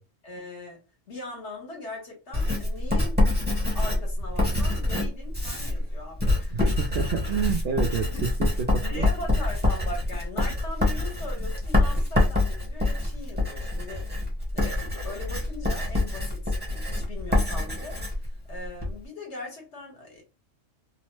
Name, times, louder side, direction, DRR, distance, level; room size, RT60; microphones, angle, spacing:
voice 1, 0.2-3.3 3.7-6.6 8.0-8.2 8.8-14.1 14.5-18.0 18.5-20.2, left 2 dB, 65° left, 1.5 m, -40 dB
Writing, 2.3-19.0, left 2 dB, 10° right, 0.9 m, -26 dB
voice 2, 6.5-8.1 8.4-9.1, right 7 dB, 65° right, 0.7 m, -29 dB
2.9 x 2.0 x 3.1 m
omnidirectional pair, 1.3 m